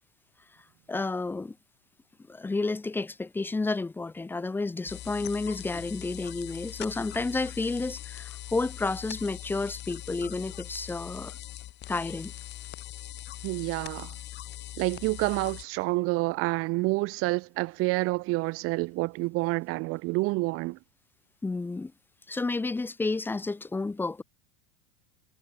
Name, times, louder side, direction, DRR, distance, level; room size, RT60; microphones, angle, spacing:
voice 1, 0.9-1.6 2.3-11.4 11.9-12.3 21.4-21.9 22.3-24.2, left 3 dB, 5° left, 0.9 m, -31 dB
sound 1, 4.9-15.6, left 14 dB, 25° left, 1.7 m, -41 dB
voice 2, 13.4-14.1 14.8-20.8, right 23 dB, 35° right, 1.2 m, -28 dB
supercardioid pair, 165°, 41 cm